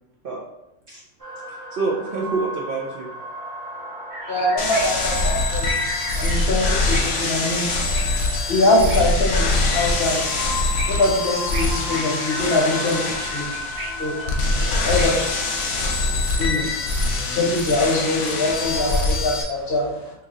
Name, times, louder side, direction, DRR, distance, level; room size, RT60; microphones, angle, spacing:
sound 1, 1.2-19.0, left 1 dB, 20° right, 0.7 m, -35 dB
voice 1, 1.5-3.1 14.5-14.9, right 4 dB, 60° right, -3 dB, 0.6 m, -27 dB
sound 2, 4.1-15.2, equal, 85° right, 1.2 m, -36 dB
voice 2, 4.3-5.9 6.1-8.0 8.5-10.2 10.9-13.0 13.3-13.5 14.0-14.3 14.8-15.1 16.4-17.1 17.4-20.1, left 2 dB, 50° left, -3 dB, 1.1 m, -23 dB
sound 3, 4.6-19.4, left 2 dB, 75° left, 1.0 m, -24 dB
2.9 x 2.4 x 4.0 m, 0.87 s
omnidirectional pair, 1.3 m